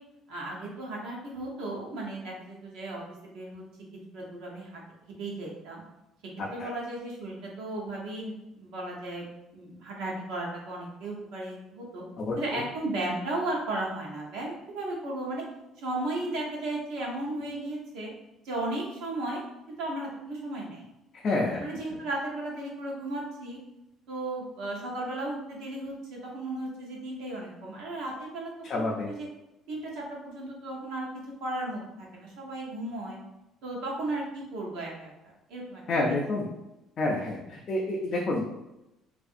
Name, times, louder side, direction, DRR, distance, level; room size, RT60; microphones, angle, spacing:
voice 1, 0.3-3.6 4.1-5.8 6.5-9.3 9.5-12.0 12.4-15.4 15.8-18.1 18.4-19.4 19.8-20.8 21.6-23.6 24.1-29.3 29.7-31.1 31.4-33.2 33.6-35.1 35.5-36.1, right 2 dB, 75° right, -3 dB, 0.8 m, -35 dB
voice 2, 6.4-6.7 12.2-12.6 21.1-21.6 28.6-29.1 35.9-36.5 37.0-38.5, left 2 dB, 35° left, -3 dB, 0.3 m, -29 dB
2.6 x 2.5 x 2.4 m, 0.92 s
cardioid pair, 175°, 0 cm